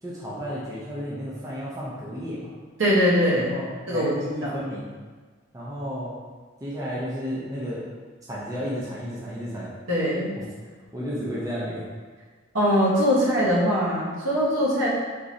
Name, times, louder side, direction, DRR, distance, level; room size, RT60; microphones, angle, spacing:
voice 1, 0.0-2.5 3.4-4.9 5.5-6.2 6.6-7.8 8.3-9.7 10.3-10.4 10.9-11.9 13.2-13.3, equal, 15° right, -7 dB, 0.5 m, -32 dB
voice 2, 2.8-3.5 3.9-4.2 4.4-4.5 9.9-10.3 12.5-14.9, equal, 65° right, -6 dB, 0.9 m, -21 dB
3.7 x 3.0 x 2.6 m, 1.5 s
head